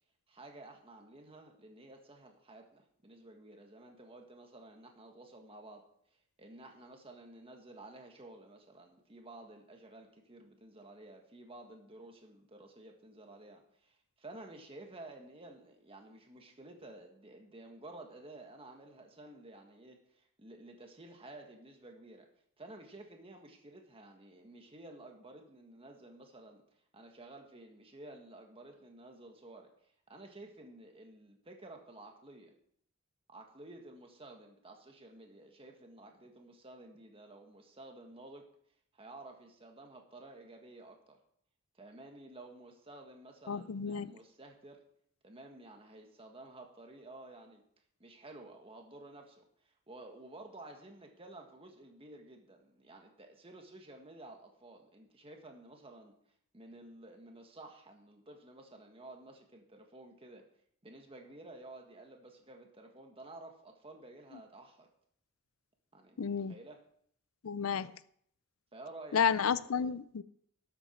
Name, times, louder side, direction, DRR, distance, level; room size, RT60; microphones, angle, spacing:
voice 1, 0.3-5.9 6.4-22.3 22.6-26.6 26.9-29.7 30.1-32.5 33.3-38.5 38.9-41.2 41.8-44.8 45.2-47.6 48.0-56.2 56.5-60.5 60.8-64.9 65.9-66.2 66.5-66.8 68.7-69.4 69.7-69.9, right 2 dB, 25° right, 3 dB, 1.7 m, -52 dB
voice 2, 43.5-44.1 66.2-66.5 67.4-67.9 69.1-70.2, left 7 dB, 75° left, 16 dB, 0.5 m, -31 dB
12.5 x 8.0 x 4.5 m, 0.65 s
head